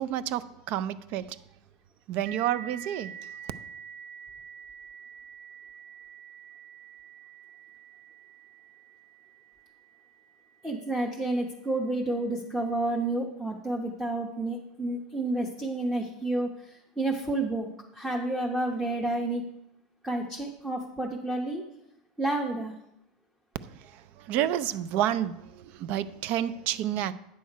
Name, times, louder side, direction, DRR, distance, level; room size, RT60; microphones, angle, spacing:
voice 1, 0.0-1.4 2.1-3.1 23.6-27.1, right 11 dB, 50° right, 0.5 m, -30 dB
sound 1, 2.3-11.5, right 8 dB, 90° right, 0.9 m, -47 dB
voice 2, 10.6-17.7 17.9-19.4 20.0-21.6 22.2-22.7, right 2 dB, 5° right, 0.9 m, -30 dB
9.3 x 6.3 x 4.6 m
supercardioid pair, 130°, 3 cm